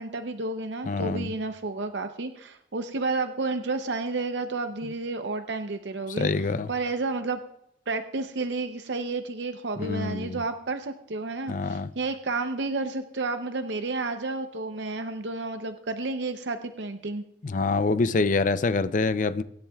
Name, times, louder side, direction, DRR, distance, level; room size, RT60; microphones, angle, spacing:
voice 1, 0.0-7.4 7.9-17.2, right 3 dB, 70° right, 0.7 m, -31 dB
voice 2, 0.9-1.3 6.2-6.7 9.8-10.4 11.5-11.9 17.4-19.4, left 3 dB, 45° left, 0.5 m, -25 dB
24.0 x 10.5 x 2.3 m
head